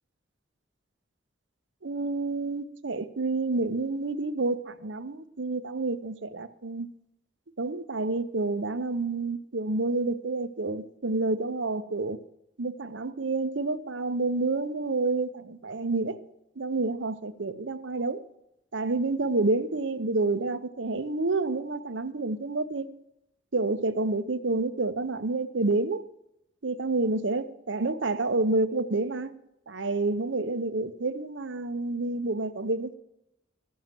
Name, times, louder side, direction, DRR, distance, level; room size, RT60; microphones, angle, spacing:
voice 1, 1.8-6.9 7.6-12.2 12.6-16.2 16.6-18.2 18.7-22.9 23.5-26.1 26.6-29.3 29.7-32.9, right 3 dB, 70° right, 0.8 m, -29 dB
15.0 x 6.5 x 7.4 m
head